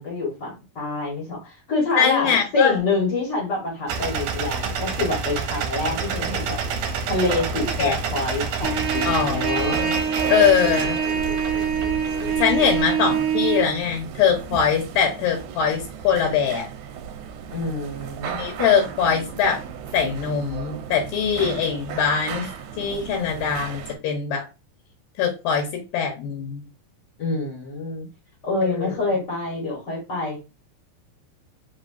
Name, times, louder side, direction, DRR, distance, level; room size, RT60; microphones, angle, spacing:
voice 1, 0.0-6.6 7.1-9.8 17.5-18.3 27.2-28.1 28.4-30.4, left 3 dB, 50° left, -3 dB, 1.2 m, -26 dB
voice 2, 2.0-2.8 7.8-8.0 9.0-9.9 10.3-11.0 11.5-11.6 12.4-16.6 18.3-19.6 19.9-22.5 22.8-24.5 25.2-25.7 25.9-26.6 28.6-28.9, left 7 dB, 80° left, 1 dB, 2.5 m, -22 dB
sound 1, 3.9-12.8, right 5 dB, 75° right, 2.2 m, -29 dB
sound 2, 5.7-24.0, right 8 dB, 90° right, 2.4 m, -36 dB
Trumpet, 8.6-13.6, right 6 dB, 45° right, 2.0 m, -24 dB
5.5 x 2.8 x 2.7 m, 0.28 s
omnidirectional pair, 4.1 m